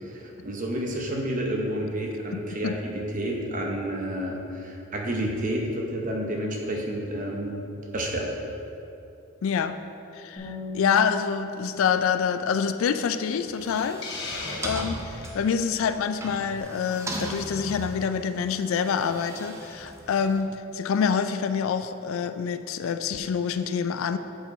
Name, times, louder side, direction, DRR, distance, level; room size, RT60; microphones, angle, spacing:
voice 1, 0.4-7.7 7.9-8.4, right 1 dB, 40° right, 0 dB, 0.8 m, -30 dB
voice 2, 2.3-2.8 9.4-9.8 10.1-14.1 14.6-24.2, left 6 dB, 75° left, 10 dB, 0.3 m, -26 dB
Bass guitar, 10.4-16.6, equal, 40° left, 1.4 m, -43 dB
sound 1, 13.4-20.4, right 1 dB, 15° right, 0.5 m, -38 dB
Hiss, 14.0-15.4, left 3 dB, 55° left, 0.9 m, -36 dB
7.7 x 4.5 x 4.0 m, 2.8 s
head